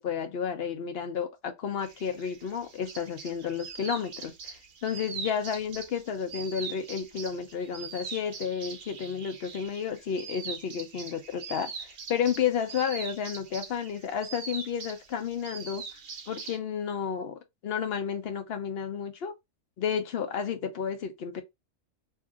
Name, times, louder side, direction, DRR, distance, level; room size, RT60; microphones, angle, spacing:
voice 1, 0.0-15.8 16.3-19.3 19.8-21.4, left 7 dB, 60° left, 0.7 m, -32 dB
sound 1, 1.8-16.6, right 5 dB, 50° right, 0.6 m, -42 dB
2.7 x 2.4 x 3.5 m
omnidirectional pair, 1.4 m